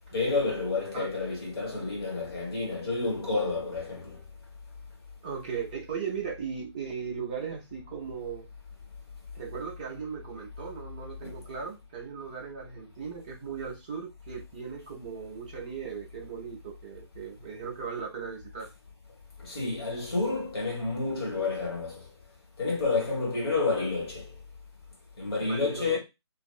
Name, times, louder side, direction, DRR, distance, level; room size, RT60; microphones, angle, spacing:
voice 1, 0.1-4.2 11.2-11.3 19.4-22.0 22.6-24.3 25.2-26.0, left 3 dB, 60° left, 1.3 m, -29 dB
voice 2, 5.2-8.5 9.3-18.7 25.4-26.0, right 6 dB, 15° right, 0.5 m, -37 dB
2.5 x 2.4 x 2.3 m
figure-of-eight pair, 145°, 15 cm